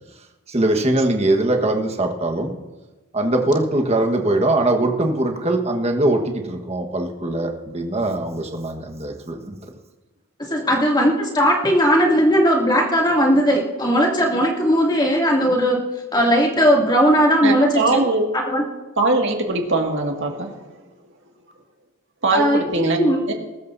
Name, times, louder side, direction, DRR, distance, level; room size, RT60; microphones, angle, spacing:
voice 1, 0.5-2.5 3.1-9.6, right 1 dB, 30° right, 3 dB, 1.4 m, -21 dB
voice 2, 10.5-15.8 16.1-17.8 18.5-18.6 22.3-23.2, equal, 20° left, -2 dB, 2.6 m, -17 dB
voice 3, 17.4-18.2 19.0-20.6 22.2-23.3, right 2 dB, 55° right, 2 dB, 2.0 m, -21 dB
22.0 x 13.0 x 2.7 m, 1.1 s
head